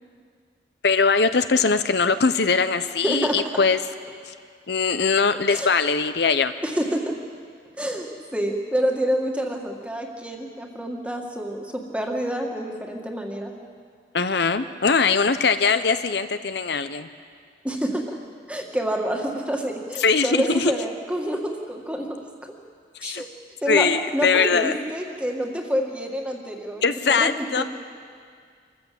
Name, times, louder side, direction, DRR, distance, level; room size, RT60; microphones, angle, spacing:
voice 1, 0.8-3.8 4.3-4.4 4.7-6.5 14.1-17.1 20.0-20.7 23.0-23.2 23.7-24.7 26.8-27.6, left 5 dB, 65° left, 10 dB, 0.7 m, -21 dB
voice 2, 3.0-3.4 5.5-5.7 6.6-7.1 7.8-13.5 17.6-18.2 18.5-22.1 23.0-23.3 23.6-27.6, equal, 5° right, 1 dB, 1.9 m, -27 dB
26.0 x 14.5 x 7.8 m, 2.1 s
head